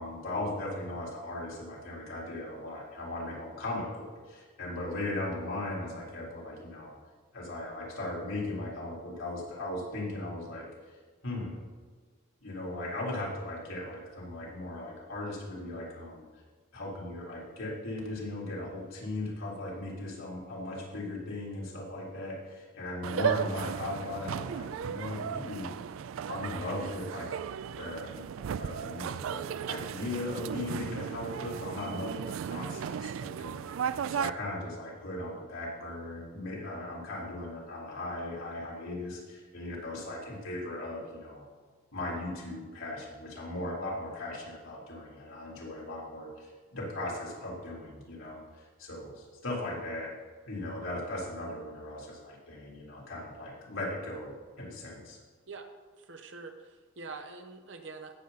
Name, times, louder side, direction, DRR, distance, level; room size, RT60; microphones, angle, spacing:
voice 1, 0.0-7.0 7.3-10.7 11.2-11.6 12.4-16.3 16.7-25.7 26.3-27.3 27.8-28.3 28.6-32.2 32.5-41.4 41.9-50.1 50.5-55.2, left 1 dB, 85° left, -4 dB, 3.6 m, -38 dB
sound 1, 23.0-34.3, right 8 dB, 85° right, 0.3 m, -35 dB
voice 2, 56.0-58.1, right 4 dB, 65° right, 6 dB, 1.0 m, -45 dB
16.5 x 6.9 x 4.1 m, 1.4 s
head